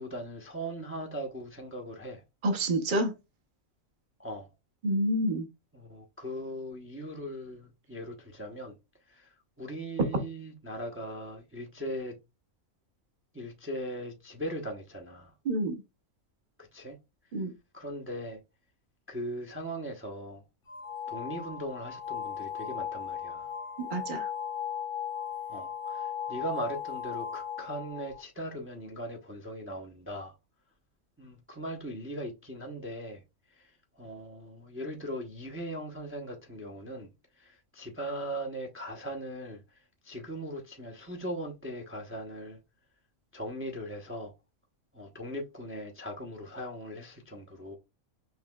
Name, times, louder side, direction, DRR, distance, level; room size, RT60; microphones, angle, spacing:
voice 1, 0.0-2.2 4.2-4.5 5.7-8.7 9.1-9.3 9.6-12.2 13.3-15.3 16.7-17.0 17.7-18.4 19.1-20.4 21.1-23.5 25.5-30.3 31.2-33.2 33.6-33.7 34.0-37.1 37.4-39.6 40.0-42.6 43.3-44.3 44.9-47.8, equal, 15° right, 0.6 m, -39 dB
voice 2, 2.4-3.1 4.8-5.5 15.4-15.7 17.3-17.5 23.9-24.3, right 1 dB, 40° right, 1.0 m, -28 dB
sound 1, 20.7-28.2, left 8 dB, 45° left, 0.9 m, -37 dB
5.7 x 3.0 x 2.3 m
omnidirectional pair, 1.4 m